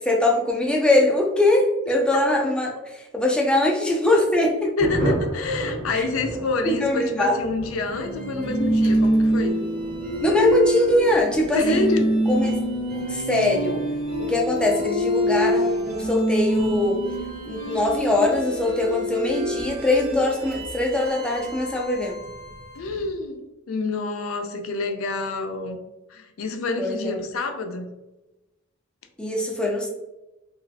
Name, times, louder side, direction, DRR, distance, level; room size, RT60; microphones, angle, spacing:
voice 1, 0.0-4.9 5.9-6.1 6.6-7.4 10.2-11.9 12.3-12.6 13.1-13.8 14.3-17.1 17.5-22.2 26.8-27.2 29.2-29.9, left 1 dB, 5° left, 0 dB, 0.4 m, -22 dB
voice 2, 4.8-9.6 11.5-12.1 22.8-23.4 23.7-25.8 26.1-27.9, left 3 dB, 90° left, 6 dB, 0.4 m, -27 dB
Thunder, 4.8-20.9 21.2-21.3 21.6-21.7 22.0-22.4, right 1 dB, 80° right, 1.1 m, -37 dB
sound 1, 7.9-23.0, equal, 45° right, 0.6 m, -26 dB
3.0 x 2.3 x 2.6 m, 1.0 s
head